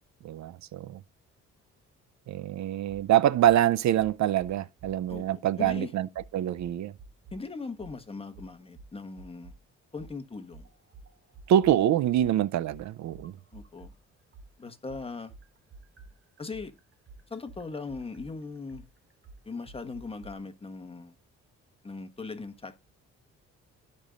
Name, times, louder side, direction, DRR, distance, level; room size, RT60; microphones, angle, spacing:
voice 1, 0.2-1.0 2.3-6.1 6.3-6.9 11.5-13.3, right 11 dB, 65° right, 0.6 m, -25 dB
sound 1, 4.4-5.2 5.6-5.8 6.2-7.4 7.8-8.0 8.3-9.6 10.0-14.0 14.3-20.3, right 3 dB, 40° right, 1.8 m, -50 dB
voice 2, 5.6-5.9 7.3-9.5 9.9-10.7 12.2-12.3 13.5-13.9 14.6-15.3 16.4-16.7 17.3-18.9 19.4-21.1 21.8-22.8, left 3 dB, 20° left, 1.4 m, -39 dB
16.0 x 5.4 x 2.5 m
cardioid pair, 90°, 30 cm